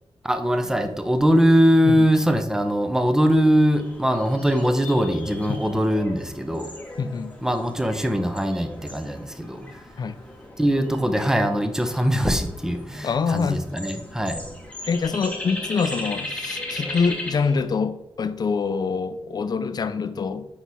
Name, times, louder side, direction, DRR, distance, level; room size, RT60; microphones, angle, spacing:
voice 1, 0.2-6.7 7.4-9.6 10.6-14.4, equal, 5° right, 0.5 m, -21 dB
sound 1, 3.7-17.7, left 1 dB, 15° left, 1.0 m, -37 dB
voice 2, 7.0-7.4 10.0-10.2 13.0-13.6 14.9-20.5, left 5 dB, 45° left, 0.4 m, -25 dB
5.8 x 4.7 x 4.1 m
wide cardioid pair, 170°, 10 cm